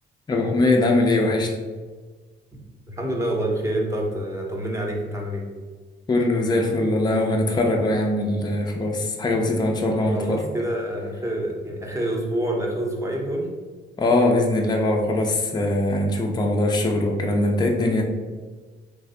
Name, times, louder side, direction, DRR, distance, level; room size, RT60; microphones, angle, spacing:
voice 1, 0.3-1.5 6.1-10.4 14.0-18.0, left 2 dB, 20° left, 1 dB, 0.5 m, -21 dB
voice 2, 2.9-5.5 9.9-13.5, right 1 dB, 15° right, -1 dB, 0.7 m, -27 dB
3.2 x 2.0 x 3.6 m, 1.4 s
cardioid pair, 90°, 20 cm